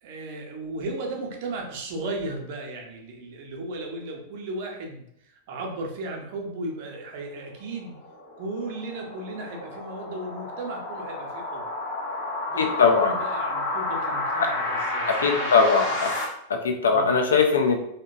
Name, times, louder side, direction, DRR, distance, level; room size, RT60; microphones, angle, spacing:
voice 1, 0.0-8.0 8.4-11.7 12.5-15.6 16.9-17.2, right 2 dB, 50° right, 1 dB, 0.6 m, -35 dB
sound 1, 7.6-16.2, left 2 dB, 50° left, 0.8 m, -31 dB
voice 2, 12.6-13.1 15.1-16.1 16.5-17.8, left 5 dB, 65° left, 5 dB, 0.4 m, -20 dB
2.8 x 2.1 x 2.5 m, 0.72 s
figure-of-eight pair, 90°, 0 cm